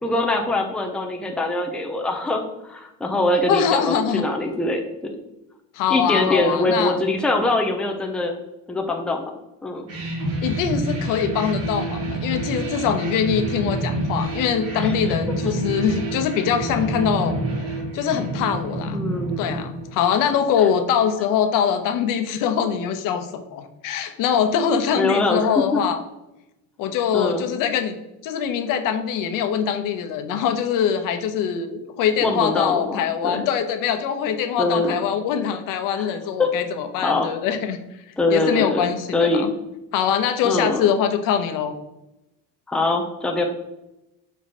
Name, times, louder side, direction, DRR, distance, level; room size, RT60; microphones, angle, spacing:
voice 1, 0.0-4.8 5.9-8.3 8.7-9.3 9.6-9.9 14.8-15.0 18.9-19.5 24.9-25.8 27.1-27.4 32.2-33.5 34.6-35.0 36.0-36.1 36.4-36.5 37.0-37.3 38.2-39.5 40.4-40.9 42.7-43.4, left 2 dB, 5° left, 2 dB, 0.5 m, -23 dB
voice 2, 3.4-4.3 5.7-7.0 10.4-17.4 17.9-19.0 19.4-26.0 26.8-28.0 28.2-37.8 38.3-39.5 39.9-41.8, left 8 dB, 75° left, 7 dB, 0.9 m, -23 dB
sound 1, 9.9-20.4, right 2 dB, 50° right, 2.3 m, -28 dB
6.1 x 4.6 x 4.2 m, 0.92 s
cardioid pair, 170°, 33 cm